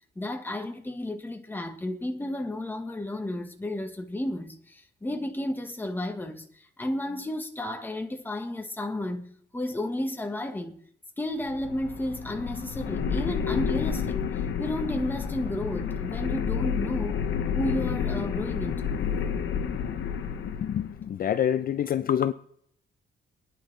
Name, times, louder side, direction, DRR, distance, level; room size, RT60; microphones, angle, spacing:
voice 1, 0.1-10.8 11.2-14.2 14.6-17.2 17.5-18.9, left 1 dB, 10° left, 1.3 m, -32 dB
sound 1, 11.4-21.0, left 7 dB, 90° left, 1.3 m, -30 dB
voice 2, 21.2-22.3, left 9 dB, 50° left, 0.5 m, -25 dB
25.5 x 10.0 x 3.3 m
cardioid pair, 145°, 19 cm